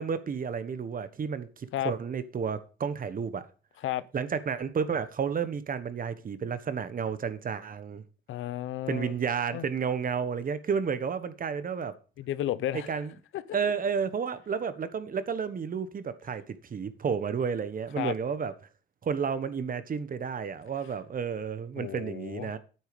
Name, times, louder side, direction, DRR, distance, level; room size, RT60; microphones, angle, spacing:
voice 1, 0.0-3.4 4.1-8.0 8.9-12.0 12.9-13.1 13.5-18.5 19.0-22.6, right 6 dB, 45° right, 1.3 m, -31 dB
voice 2, 8.3-9.1 9.5-9.6 12.2-12.9 13.3-13.4 18.0-18.1 21.8-22.5, left 12 dB, 80° left, 0.8 m, -32 dB
9.3 x 8.0 x 5.3 m
cardioid pair, 90°, 20 cm